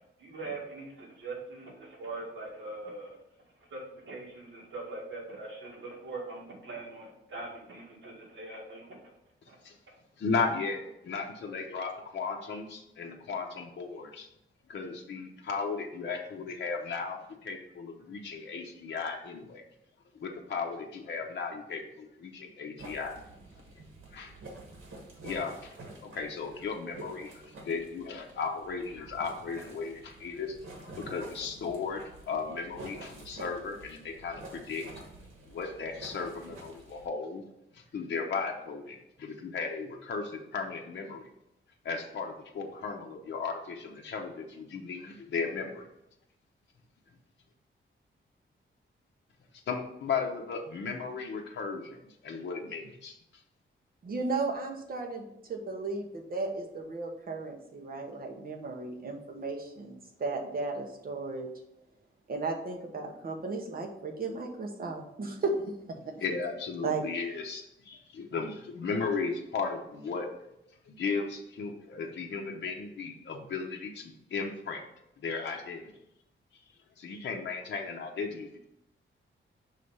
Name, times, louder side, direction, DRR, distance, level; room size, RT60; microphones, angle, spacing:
voice 1, 0.2-3.2 3.6-9.1 9.5-9.6 9.9-10.0, right 3 dB, 65° right, -3 dB, 2.0 m, -42 dB
voice 2, 10.2-14.3 14.7-19.6 20.1-23.1 24.1-24.3 25.2-34.8 35.5-37.4 37.7-41.3 41.8-45.9 49.7-53.1 66.2-70.3 70.8-74.8 75.2-75.9 77.0-78.7, left 5 dB, 60° left, 1 dB, 0.7 m, -36 dB
sound 1, 22.8-37.1, right 2 dB, 90° right, 1.4 m, -48 dB
voice 3, 54.0-61.5 62.3-66.3 66.8-67.0, right 3 dB, 45° right, 2 dB, 0.9 m, -35 dB
5.6 x 3.3 x 5.4 m, 0.85 s
wide cardioid pair, 180°, 21 cm